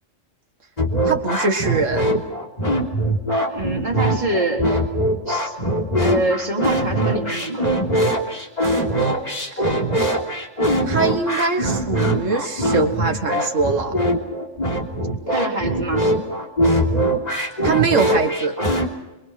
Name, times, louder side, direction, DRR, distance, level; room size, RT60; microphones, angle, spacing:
sound 1, 0.8-18.9, right 1 dB, 35° left, 3.4 m, -21 dB
voice 1, 1.0-2.1 9.6-9.7 10.9-14.0 17.6-18.6, right 4 dB, 90° right, 5 dB, 2.1 m, -22 dB
voice 2, 3.5-4.7 5.3-5.5 6.0-7.7 15.3-16.1, right 2 dB, 35° right, 0 dB, 4.1 m, -25 dB
27.0 x 25.0 x 5.9 m, 0.99 s
omnidirectional pair, 1.3 m